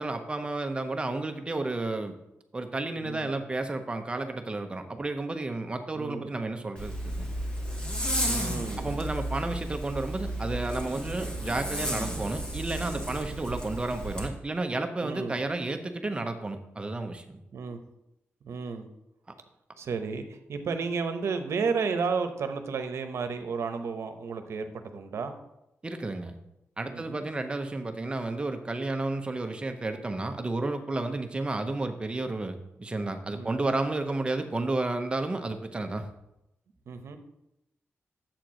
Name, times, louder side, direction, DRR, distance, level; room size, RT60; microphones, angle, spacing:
voice 1, 0.0-2.1 2.5-7.3 8.8-17.4 25.8-26.4 26.8-36.1, right 2 dB, 20° right, 6 dB, 0.7 m, -32 dB
voice 2, 3.0-3.3 5.9-6.3 8.2-8.9 15.0-15.4 17.5-17.8 18.4-18.9 19.8-25.3 26.9-27.2 33.3-33.5 36.9-37.2, right 5 dB, 75° right, 8 dB, 0.8 m, -32 dB
Zipper (clothing), 6.8-14.3, equal, 20° left, 1.4 m, -33 dB
7.8 x 4.4 x 6.3 m, 0.87 s
wide cardioid pair, 145°, 5 cm